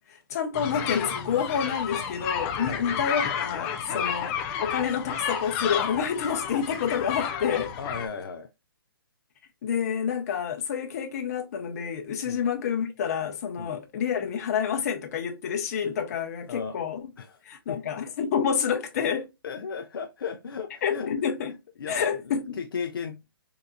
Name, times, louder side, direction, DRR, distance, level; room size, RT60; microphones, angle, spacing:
voice 1, 0.3-4.3 4.6-7.7 9.6-17.0 17.5-19.3 20.8-21.5 21.9-22.6, left 7 dB, 40° left, 0.8 m, -28 dB
sound 1, 0.5-8.1, left 8 dB, 15° left, 0.3 m, -31 dB
voice 2, 7.8-8.5 12.2-12.4 13.6-13.7 16.5-16.8 17.2-17.4 17.7-17.8 19.4-21.1 21.8-23.2, left 6 dB, 65° left, 0.5 m, -35 dB
3.8 x 2.7 x 2.2 m
hypercardioid pair, 155°, 13 cm